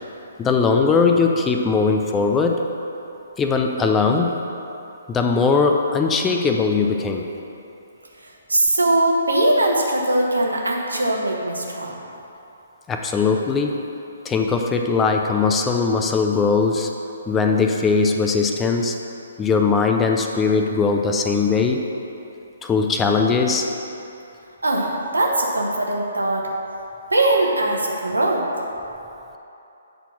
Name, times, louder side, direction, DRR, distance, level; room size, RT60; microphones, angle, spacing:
voice 1, 0.4-2.7 3.4-4.3 5.1-7.2 12.9-13.8 14.2-16.9 17.3-19.0 19.4-21.8 22.6-23.7, left 4 dB, 15° left, 3 dB, 0.5 m, -20 dB
voice 2, 8.2-12.0 24.6-26.5 27.1-28.5, right 1 dB, 80° right, 0 dB, 1.2 m, -21 dB
8.0 x 4.3 x 5.8 m, 2.9 s
figure-of-eight pair, 130°, 0 cm